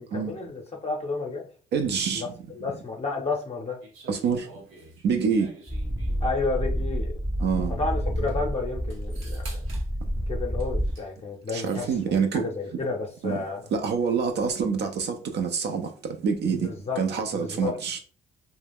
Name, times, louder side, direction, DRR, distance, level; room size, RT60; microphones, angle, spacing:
voice 1, 0.0-1.5 2.1-2.3 2.5-3.8 6.2-7.1 7.8-9.6 10.3-13.7 16.5-17.0 17.3-17.7, left 3 dB, 30° left, 0.6 m, -31 dB
voice 2, 1.7-2.2 4.1-4.5 5.0-5.5 7.4-7.7 11.5-12.4 13.2-13.4 13.7-18.0, right 6 dB, 60° right, 0.4 m, -26 dB
sound 1, 3.8-6.6 7.7-7.8 8.0-8.3 8.9-9.9 10.6-11.1 11.3-11.8, right 2 dB, 80° right, 0.9 m, -49 dB
sound 2, 5.7-10.9, equal, 15° right, 0.6 m, -29 dB
2.2 x 2.1 x 3.4 m
cardioid pair, 90°, 20 cm